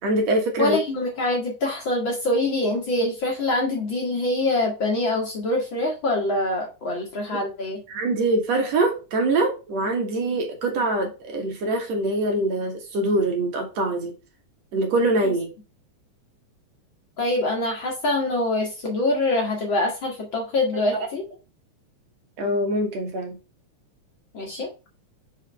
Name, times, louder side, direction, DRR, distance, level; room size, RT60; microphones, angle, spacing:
voice 1, 0.0-0.8 7.3-7.4 7.9-14.1 14.7-15.5 22.4-23.4, right 2 dB, 65° right, 2 dB, 2.6 m, -24 dB
voice 2, 0.6-7.8 15.2-15.3 17.2-21.2 24.3-24.7, left 2 dB, 45° left, 0 dB, 2.0 m, -24 dB
5.5 x 4.9 x 5.4 m, 0.30 s
omnidirectional pair, 3.4 m